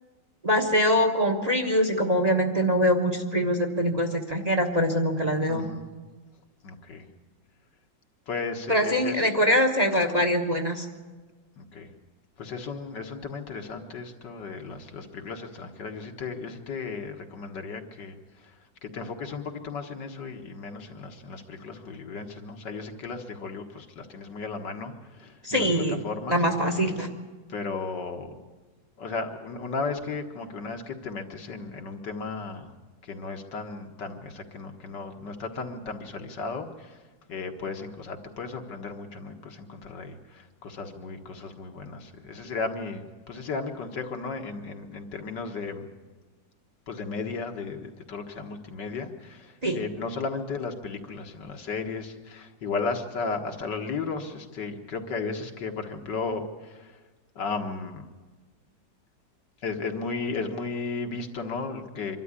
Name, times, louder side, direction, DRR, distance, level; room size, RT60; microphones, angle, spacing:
voice 1, 0.4-5.7 8.7-10.9 25.4-26.0 26.3-27.1 49.6-49.8, equal, 25° right, 4 dB, 1.3 m, -23 dB
voice 2, 5.5-5.8 6.6-7.1 8.3-9.3 11.6-11.9 12.4-18.5 18.8-26.4 27.5-28.4 29.0-32.7 33.0-37.0 37.3-45.9 46.9-57.0 57.4-58.1 59.6-62.2, left 4 dB, 65° left, 4 dB, 2.1 m, -35 dB
25.0 x 12.5 x 9.6 m, 1.3 s
omnidirectional pair, 2.0 m